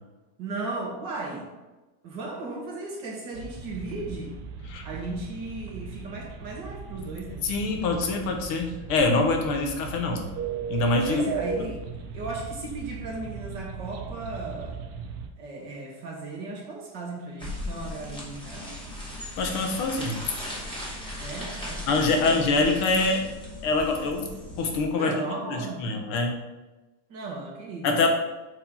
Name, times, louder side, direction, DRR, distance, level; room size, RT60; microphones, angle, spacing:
voice 1, 0.4-1.4 2.0-4.3 4.8-7.5 11.1-11.8 12.1-14.8 15.4-18.8 21.2-22.8 24.9-25.9 27.1-28.1, right 3 dB, 55° right, -1 dB, 2.1 m, -36 dB
sound 1, 3.3-15.3, right 5 dB, 85° right, 1.7 m, -37 dB
voice 2, 7.4-10.3 10.7-11.3 19.2-20.2 21.9-23.3 23.6-25.1 25.5-26.4 27.8-28.1, left 3 dB, 75° left, 3 dB, 1.9 m, -25 dB
sound 2, 17.4-24.8, left 1 dB, ahead, 1.9 m, -37 dB
7.4 x 4.4 x 5.6 m, 1.1 s
omnidirectional pair, 2.4 m